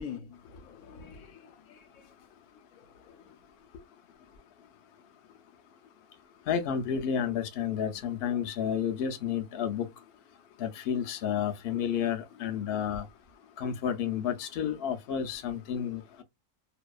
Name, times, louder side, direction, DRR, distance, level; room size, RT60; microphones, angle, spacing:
voice 1, 0.0-3.4, left 7 dB, 85° left, 1.0 m, -47 dB
voice 2, 6.5-9.9 10.6-13.1 13.6-16.2, left 8 dB, 65° left, 0.6 m, -31 dB
2.7 x 2.2 x 2.3 m
omnidirectional pair, 1.4 m